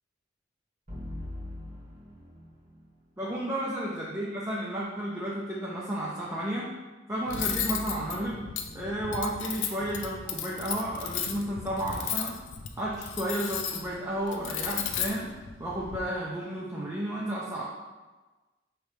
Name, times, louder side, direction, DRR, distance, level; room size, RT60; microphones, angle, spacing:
sound 1, 0.9-3.1 7.3-10.5, left 1 dB, 40° right, 1.2 m, -43 dB
voice 1, 3.2-6.7 7.1-8.4 8.7-12.4 12.8-15.3 15.6-17.6, right 1 dB, 15° right, -6 dB, 0.5 m, -32 dB
Cutlery silverware, 7.3-16.0, left 8 dB, 75° left, 0.4 m, -35 dB
4.9 x 3.2 x 3.2 m, 1.2 s
head